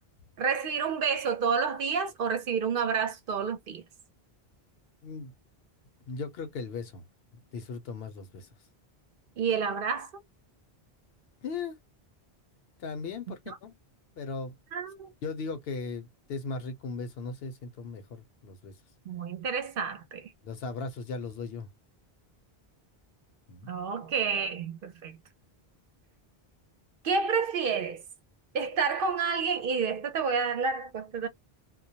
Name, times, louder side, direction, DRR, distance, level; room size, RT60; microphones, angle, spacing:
voice 1, 0.4-3.8 9.4-10.2 13.3-13.6 14.7-15.1 19.1-20.3 23.6-25.2 27.0-28.0 28.5-31.3, right 5 dB, 65° right, 0.7 m, -29 dB
voice 2, 5.0-5.3 6.1-7.0 7.5-8.5 11.4-11.8 12.8-13.8 14.2-14.5 15.2-18.7 20.4-21.7 23.5-23.7, left 4 dB, 75° left, 0.8 m, -37 dB
2.2 x 2.0 x 2.8 m
omnidirectional pair, 1.0 m